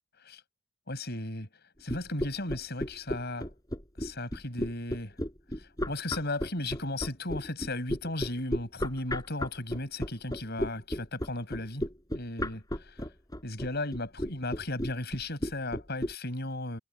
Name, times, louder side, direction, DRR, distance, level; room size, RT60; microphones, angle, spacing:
voice 1, 0.9-1.5 1.8-3.5 4.0-5.2 5.6-11.8 12.1-13.0 13.4-16.8, left 2 dB, 50° left, 6.7 m, -35 dB
sound 1, 1.9-16.1, equal, 15° left, 6.9 m, -33 dB
head